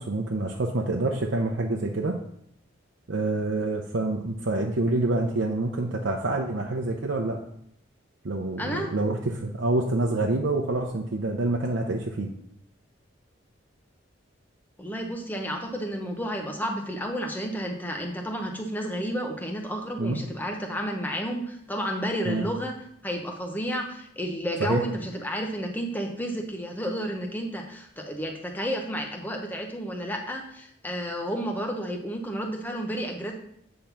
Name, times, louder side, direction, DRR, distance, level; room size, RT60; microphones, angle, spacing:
voice 1, 0.0-2.1 3.1-7.4 8.2-12.3 20.0-20.2 22.3-22.5 24.6-24.8, right 2 dB, 75° right, 1 dB, 0.7 m, -27 dB
voice 2, 8.6-8.9 14.8-22.7 23.0-33.3, equal, 10° left, 2 dB, 0.9 m, -31 dB
8.7 x 3.8 x 5.8 m, 0.71 s
head